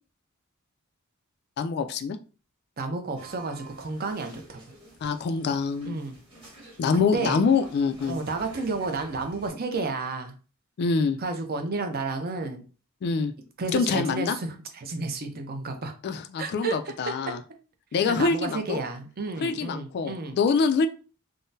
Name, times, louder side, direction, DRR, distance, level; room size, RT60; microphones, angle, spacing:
voice 1, 1.6-2.2 5.0-6.0 6.8-8.2 10.8-11.2 13.0-13.3 13.7-14.4 16.0-17.4 17.9-18.8 19.4-20.9, left 5 dB, 50° left, 9 dB, 0.3 m, -25 dB
voice 2, 2.8-4.6 5.8-6.2 6.9-7.4 8.1-10.3 11.2-12.6 13.6-15.9 16.4-16.7 17.1-17.3 18.1-20.4, right 3 dB, 45° right, 6 dB, 0.6 m, -31 dB
sound 1, 3.1-9.5, right 1 dB, 25° right, 1.3 m, -48 dB
3.6 x 2.0 x 2.6 m, 0.36 s
head